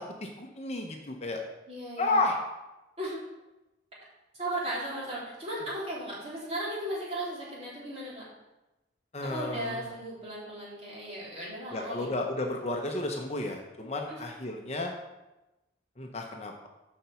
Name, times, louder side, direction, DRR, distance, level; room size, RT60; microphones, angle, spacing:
voice 1, 0.0-1.4 2.0-2.4 9.1-9.8 11.7-14.9 16.0-16.7, left 2 dB, 35° left, 2 dB, 0.8 m, -32 dB
voice 2, 1.7-2.2 3.0-3.2 4.3-8.2 9.2-12.1 14.1-14.2, right 1 dB, 35° right, -6 dB, 3.3 m, -36 dB
7.3 x 5.9 x 6.9 m, 1.0 s
head